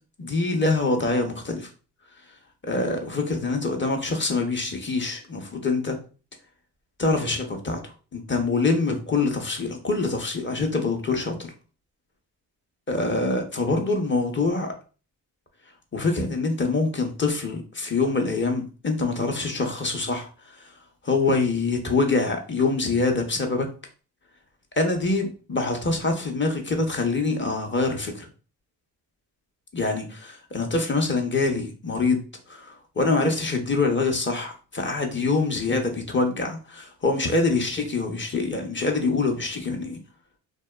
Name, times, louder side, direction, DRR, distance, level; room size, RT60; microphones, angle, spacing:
voice 1, 0.2-1.7 2.7-6.0 7.0-11.5 12.9-14.7 15.9-20.3 21.0-23.7 24.8-28.3 29.7-40.0, left 3 dB, 25° left, 3 dB, 0.7 m, -25 dB
2.8 x 2.1 x 2.3 m, 0.36 s
supercardioid pair, 55°, 45 cm